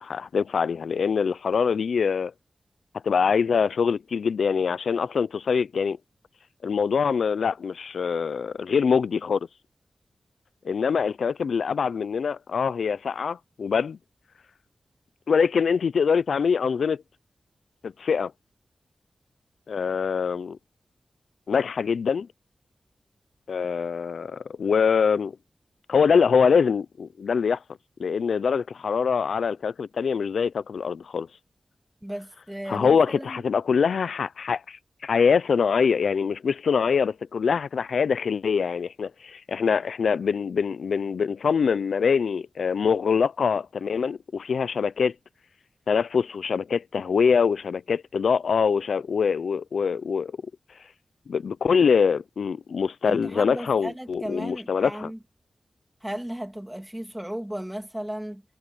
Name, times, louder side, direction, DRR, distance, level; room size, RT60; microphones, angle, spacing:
voice 1, 0.0-2.3 3.0-6.0 6.6-9.4 10.6-14.0 15.3-17.0 17.8-18.3 19.7-20.6 21.5-22.3 23.5-25.4 25.9-27.6 28.0-31.3 32.7-45.1 45.9-50.3 51.3-55.1, left 6 dB, 85° left, 0.4 m, -24 dB
voice 2, 32.0-33.4 53.0-55.2 56.0-58.4, right 1 dB, 10° right, 2.6 m, -35 dB
cardioid pair, 55°, 0 cm